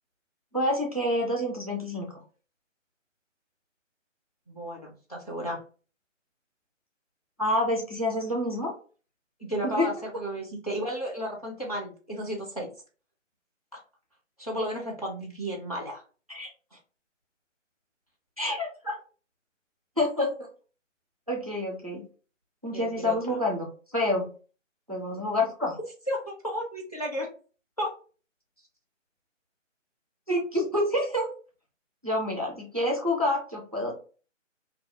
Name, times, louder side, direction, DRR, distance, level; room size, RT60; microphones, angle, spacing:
voice 1, 0.5-2.1 7.4-8.7 9.6-9.9 16.3-16.5 18.4-19.0 20.0-20.3 21.3-22.0 22.6-23.7 23.9-24.3 24.9-25.8 30.3-31.3 32.0-33.9, left 1 dB, 30° right, -2 dB, 0.4 m, -27 dB
voice 2, 4.5-5.6 9.4-12.7 13.7-13.8 14.4-16.0 22.7-23.2 26.1-27.3 27.8-27.9, equal, 30° left, -3 dB, 0.4 m, -33 dB
2.3 x 2.0 x 2.7 m, 0.37 s
figure-of-eight pair, 155°, 38 cm